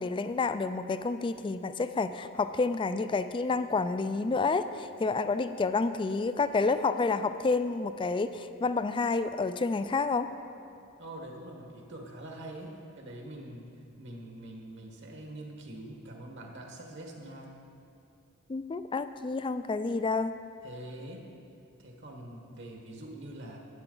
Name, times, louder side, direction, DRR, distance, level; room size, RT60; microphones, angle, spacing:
voice 1, 0.0-10.3 18.5-20.3, left 4 dB, 25° left, 11 dB, 0.3 m, -29 dB
voice 2, 11.0-13.7 14.0-17.6 20.6-21.2 21.8-23.6, right 1 dB, 60° right, 1 dB, 1.5 m, -44 dB
12.5 x 9.0 x 3.9 m, 2.6 s
head